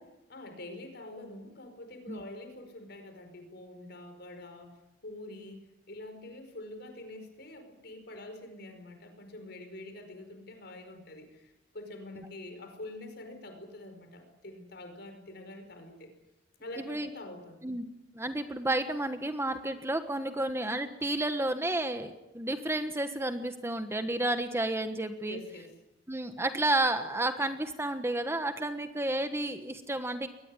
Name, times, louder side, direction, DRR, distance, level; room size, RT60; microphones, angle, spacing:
voice 1, 0.3-16.1 16.6-17.7 25.2-25.7, left 1 dB, 60° left, 7 dB, 5.0 m, -46 dB
voice 2, 16.8-17.1 17.6-17.9 18.1-25.4 26.1-30.3, right 1 dB, 15° right, 8 dB, 1.3 m, -31 dB
22.0 x 20.0 x 9.8 m, 0.98 s
head